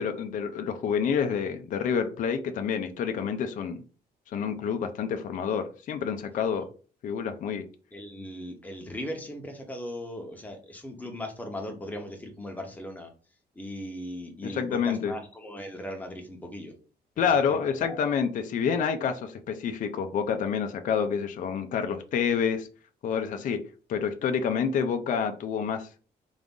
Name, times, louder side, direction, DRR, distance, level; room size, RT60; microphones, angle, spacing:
voice 1, 0.0-3.8 4.3-6.7 7.0-7.6 14.4-15.1 17.2-22.7 23.0-23.6 23.9-25.9, left 7 dB, 45° left, 7 dB, 0.4 m, -28 dB
voice 2, 7.9-13.1 13.5-16.7 17.2-17.6 17.9-18.0 24.4-24.5, left 1 dB, 10° left, 3 dB, 0.7 m, -38 dB
3.9 x 2.5 x 3.6 m, 0.38 s
cardioid pair, 175°, 18 cm